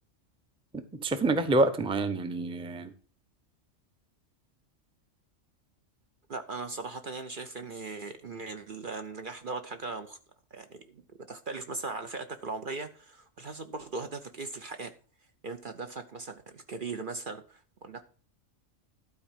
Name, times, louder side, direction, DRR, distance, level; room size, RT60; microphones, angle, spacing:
voice 1, 0.9-2.9, right 2 dB, 5° right, 10 dB, 0.6 m, -27 dB
voice 2, 6.3-10.2 10.5-11.0 11.3-14.9 15.4-18.0, right 3 dB, 50° right, 8 dB, 0.8 m, -39 dB
12.0 x 4.5 x 7.3 m, 0.40 s
omnidirectional pair, 1.3 m